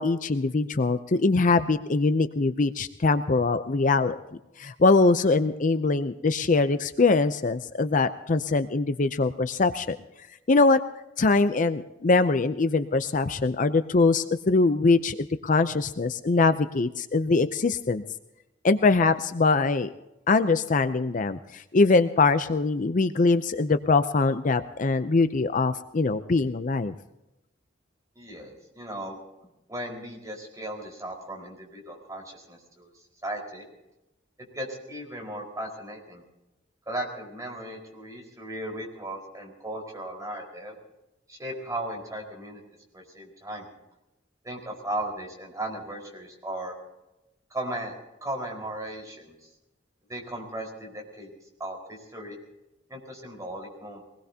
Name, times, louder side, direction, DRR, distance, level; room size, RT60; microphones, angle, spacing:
voice 1, 0.0-4.2 4.6-10.0 10.5-10.8 11.2-18.0 18.6-19.9 20.3-26.9, left 3 dB, 45° left, 10 dB, 0.6 m, -23 dB
voice 2, 28.1-29.2 29.4-32.9 33.2-33.6 34.5-36.2 36.9-40.8 41.3-42.6 42.9-43.7 44.4-46.8 47.5-47.9 48.2-49.4 50.1-51.3 51.6-52.4 52.9-54.0, right 1 dB, 20° right, 0 dB, 4.7 m, -36 dB
23.5 x 20.0 x 2.8 m, 0.94 s
head